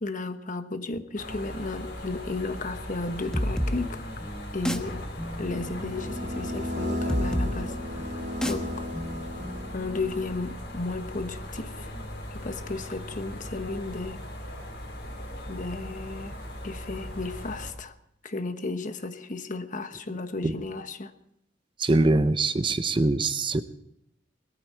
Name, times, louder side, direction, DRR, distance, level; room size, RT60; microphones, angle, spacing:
voice 1, 0.0-4.1 4.5-5.0 5.4-8.7 9.7-11.9 12.3-14.2 15.5-16.3 16.6-17.9 18.2-21.1, left 3 dB, 45° left, 1.2 m, -34 dB
sound 1, 1.1-17.7, left 1 dB, 80° left, 4.6 m, -39 dB
sound 2, 3.3-10.7, equal, 5° left, 1.1 m, -33 dB
sound 3, 5.4-10.1, left 1 dB, 85° right, 1.7 m, -34 dB
voice 2, 21.8-23.6, right 2 dB, 30° right, 0.7 m, -23 dB
20.5 x 14.0 x 4.5 m
head